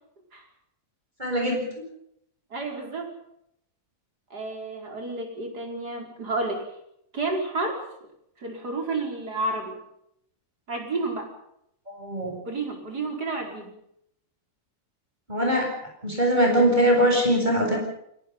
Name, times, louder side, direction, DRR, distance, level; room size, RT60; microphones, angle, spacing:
voice 1, 1.2-1.6 11.9-12.3 15.3-15.7 16.0-17.8, equal, 20° right, 0 dB, 7.9 m, -21 dB
voice 2, 2.5-3.2 4.3-6.6 7.1-7.8 8.4-9.8 10.7-11.3 12.5-13.7, right 2 dB, 45° right, 2 dB, 5.5 m, -30 dB
29.5 x 18.0 x 5.5 m, 0.76 s
omnidirectional pair, 2.3 m